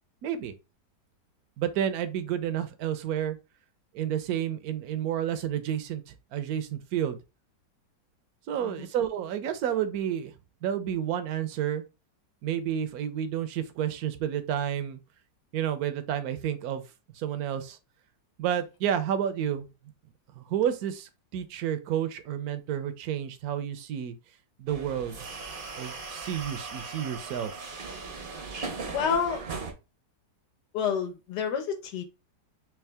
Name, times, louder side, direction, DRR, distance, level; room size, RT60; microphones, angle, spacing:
voice 1, 0.2-0.5 1.6-3.4 3.9-7.2 8.5-10.3 10.6-11.8 12.4-15.0 15.5-16.8 17.1-17.8 18.4-19.7 20.3-24.1 24.6-25.2 25.8-27.6, right 10 dB, 70° right, 1.0 m, -30 dB
sound 1, 24.7-29.7, right 4 dB, 50° right, 0.6 m, -38 dB
voice 2, 28.9-29.4 30.7-32.0, left 7 dB, 75° left, 1.4 m, -29 dB
3.6 x 3.0 x 3.3 m
omnidirectional pair, 1.9 m